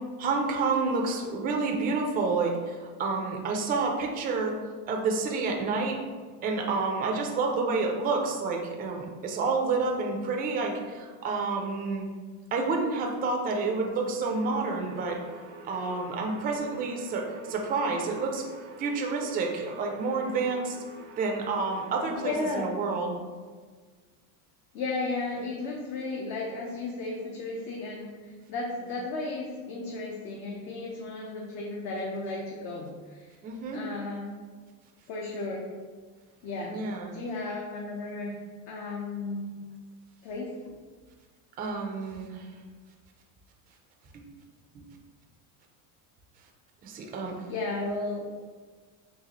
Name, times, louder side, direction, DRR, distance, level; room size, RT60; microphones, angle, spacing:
voice 1, 0.2-4.6 4.9-6.0 6.4-12.1 12.5-15.2 15.6-18.4 18.8-20.8 21.2-23.2 33.4-33.8 36.7-37.1 41.6-42.5 44.1-44.2 44.7-44.9 46.8-47.5, right 4 dB, 25° right, 1 dB, 0.3 m, -29 dB
sound 1, 14.4-22.6, right 3 dB, 80° right, 0.6 m, -46 dB
voice 2, 22.2-22.7 24.7-33.4 33.7-34.4 35.1-35.8 36.4-36.8 37.1-39.5 40.2-40.6 47.5-48.3, left 3 dB, 60° left, -2 dB, 0.6 m, -34 dB
4.0 x 2.4 x 2.9 m, 1.5 s
cardioid pair, 125°, 43 cm